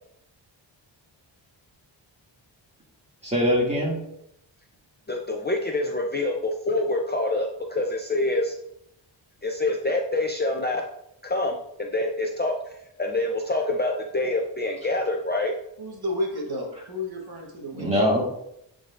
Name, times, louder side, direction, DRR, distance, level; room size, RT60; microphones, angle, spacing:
voice 1, 3.2-4.0 17.7-18.2, equal, 15° right, -4 dB, 2.2 m, -22 dB
voice 2, 5.1-8.6 9.4-10.8 11.2-12.6 13.0-15.5, left 2 dB, 20° left, 1 dB, 0.6 m, -26 dB
voice 3, 15.8-17.9, left 1 dB, 50° right, 0 dB, 1.3 m, -31 dB
9.9 x 3.9 x 2.5 m, 0.78 s
wide cardioid pair, 100°, 46 cm